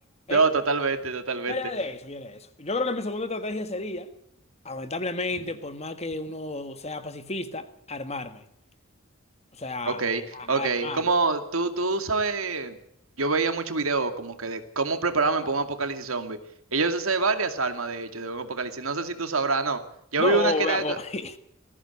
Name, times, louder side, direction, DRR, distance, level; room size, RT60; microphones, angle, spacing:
voice 1, 0.3-1.6 9.9-10.2 10.5-12.8 13.2-16.4 16.7-19.8 20.1-21.0, right 3 dB, 85° right, 2.4 m, -26 dB
voice 2, 1.5-4.1 4.6-8.4 9.6-10.0 10.3-11.0 20.2-21.4, left 2 dB, 30° left, 1.6 m, -31 dB
20.5 x 15.5 x 8.4 m
head